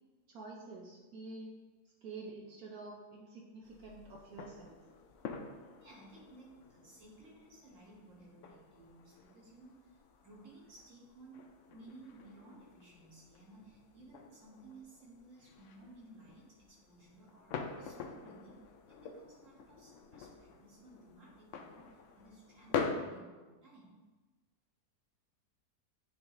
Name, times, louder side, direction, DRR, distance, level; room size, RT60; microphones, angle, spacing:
voice 1, 0.3-1.5 1.8-4.8, right 3 dB, 70° right, -2 dB, 1.2 m, -48 dB
sound 1, 3.6-22.9, left 6 dB, 70° left, 0.7 m, -46 dB
voice 2, 5.8-24.0, right 2 dB, 55° right, -4 dB, 1.8 m, -57 dB
8.8 x 3.8 x 3.1 m, 1.3 s
omnidirectional pair, 1.7 m